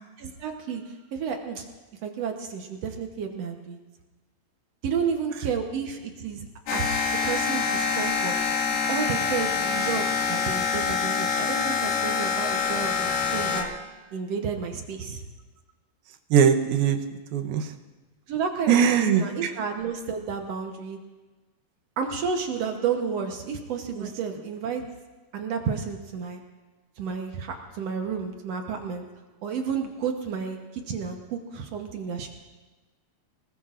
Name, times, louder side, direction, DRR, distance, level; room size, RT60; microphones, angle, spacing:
voice 1, 0.2-1.6 2.0-3.8 4.8-6.4 6.7-6.8 7.1-8.3 8.9-13.7 14.1-15.2 18.3-21.0 22.0-24.9 25.3-26.4 27.0-29.0 29.4-32.3, right 6 dB, 70° right, 3 dB, 1.5 m, -31 dB
sound 1, 6.7-13.6, left 5 dB, 80° left, 3.5 m, -26 dB
voice 2, 16.3-17.0 17.3-17.7 18.7-19.5 24.0-24.1, right 8 dB, 90° right, 7 dB, 2.8 m, -21 dB
25.5 x 20.0 x 2.5 m, 1.2 s
omnidirectional pair, 4.3 m